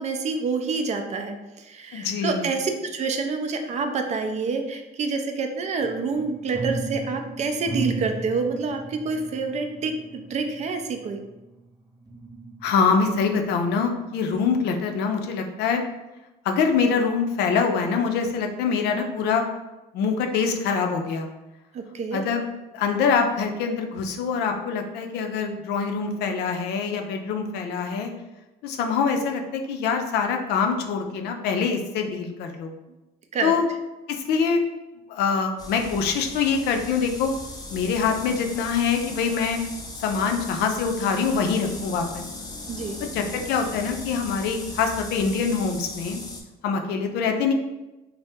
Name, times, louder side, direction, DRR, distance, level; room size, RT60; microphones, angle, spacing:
voice 1, 0.0-11.2 21.7-22.2 33.3-33.5 42.7-43.0, right 4 dB, 40° right, 5 dB, 0.4 m, -27 dB
voice 2, 1.9-2.4 12.6-15.8 16.5-19.4 19.9-21.3 22.1-22.5 22.7-28.1 28.6-32.7 33.4-33.6 34.1-34.6 35.1-37.3 37.7-39.6 40.0-42.2 43.1-46.2 46.6-47.5, left 5 dB, 80° left, 4 dB, 0.4 m, -24 dB
sound 1, 5.8-11.6 12.1-13.2 13.7-13.8, right 2 dB, 20° right, 0.8 m, -35 dB
sound 2, 35.6-46.4, left 2 dB, 25° left, 0.5 m, -38 dB
2.7 x 2.0 x 3.4 m, 1.0 s
cardioid pair, 110°, 17 cm